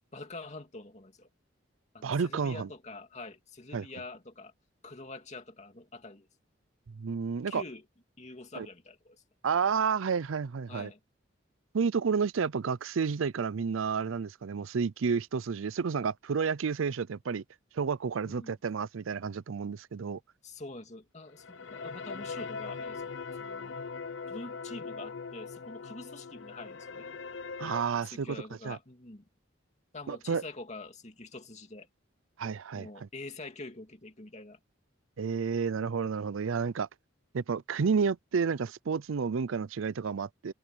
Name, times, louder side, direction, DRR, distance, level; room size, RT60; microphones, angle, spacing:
voice 1, 0.1-1.3 1.9-4.5 4.8-6.3 7.5-7.8 8.2-9.2 10.7-11.0 18.3-18.5 20.4-23.1 23.4-23.8 24.3-27.1 28.0-29.2 29.9-31.9 32.7-34.6, left 2 dB, 35° left, 2.6 m, -45 dB
voice 2, 2.0-2.7 3.7-3.9 6.9-7.6 8.6-8.7 9.4-10.9 11.7-17.4 17.7-20.2 27.6-28.3 28.6-28.8 30.1-30.4 32.4-32.9 35.2-36.9 37.3-40.5, right 5 dB, 80° right, 0.5 m, -30 dB
sound 1, 21.3-27.8, left 4 dB, 65° left, 0.7 m, -41 dB
head